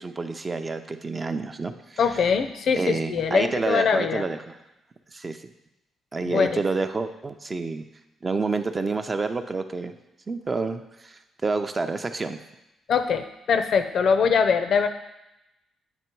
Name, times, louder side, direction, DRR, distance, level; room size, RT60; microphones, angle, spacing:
voice 1, 0.0-2.2 2.7-4.6 5.1-5.5 6.1-7.8 8.2-9.9 10.3-12.4, right 3 dB, 25° right, 7 dB, 0.5 m, -29 dB
voice 2, 2.0-4.2 6.3-6.6 12.9-14.9, left 6 dB, 65° left, 8 dB, 0.5 m, -22 dB
9.0 x 3.1 x 4.5 m, 0.93 s
cardioid pair, 90°, 0 cm